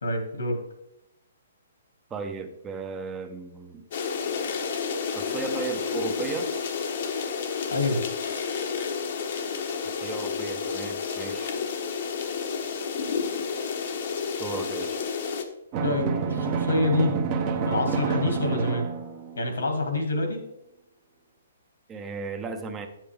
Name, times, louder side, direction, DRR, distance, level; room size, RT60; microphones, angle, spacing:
voice 1, 0.0-0.6 7.7-8.0 15.8-17.1 17.6-18.8 19.3-20.4, left 2 dB, 85° left, 4 dB, 2.2 m, -26 dB
voice 2, 2.1-3.9 5.2-6.5 10.0-11.5 14.4-15.0 21.9-22.9, right 4 dB, 15° right, 5 dB, 0.9 m, -35 dB
sound 1, 3.9-15.4, left 6 dB, 55° left, 1.1 m, -30 dB
Drum, 15.7-19.5, right 6 dB, 35° right, 1.1 m, -28 dB
9.4 x 7.5 x 3.5 m, 0.83 s
hypercardioid pair, 140°, 0 cm